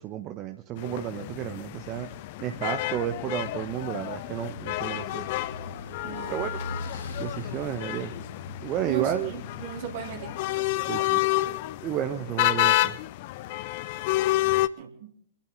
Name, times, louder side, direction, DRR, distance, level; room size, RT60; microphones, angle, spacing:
voice 1, 0.0-2.1 2.4-5.3 6.3-6.6 7.2-8.1 8.6-9.3 10.9-11.2 11.8-13.0, right 11 dB, 30° right, 6 dB, 1.0 m, -32 dB
sound 1, 0.8-14.7, left 17 dB, 45° left, 0.5 m, -30 dB
Motorcycle / Engine, 3.8-10.8, left 1 dB, 65° left, 6.7 m, -42 dB
voice 2, 6.0-6.5 8.8-10.4 14.8-15.1, right 9 dB, 50° right, 0 dB, 2.7 m, -37 dB
25.0 x 11.5 x 3.8 m, 0.65 s
figure-of-eight pair, 105°, 0 cm